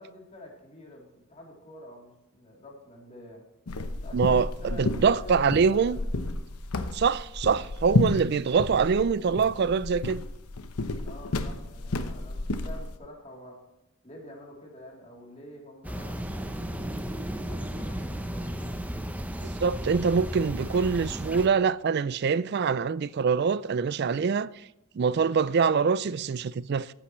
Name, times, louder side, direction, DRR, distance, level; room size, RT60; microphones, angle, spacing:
voice 1, 0.0-3.4 4.0-6.2 10.9-13.6 14.0-18.7, left 1 dB, 30° left, 3.1 m, -48 dB
sound 1, 3.7-13.0, left 2 dB, 85° left, 0.9 m, -31 dB
voice 2, 4.1-6.0 6.9-10.2 19.6-24.5 25.0-26.9, right 5 dB, 45° right, 0.3 m, -24 dB
sound 2, 15.8-21.5, equal, 5° right, 0.7 m, -34 dB
14.5 x 10.0 x 3.1 m
head